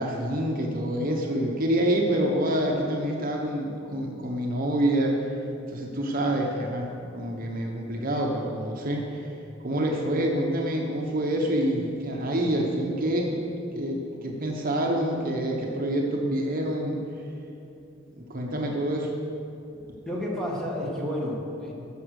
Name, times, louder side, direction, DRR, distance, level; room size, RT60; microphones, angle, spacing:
voice 1, 0.0-5.2 5.7-6.9 7.1-9.2 9.6-17.0 18.1-19.1, right 1 dB, 45° right, 0 dB, 1.1 m, -27 dB
voice 2, 20.1-21.7, equal, 5° left, -4 dB, 2.0 m, -30 dB
14.0 x 6.0 x 6.5 m, 2.7 s
head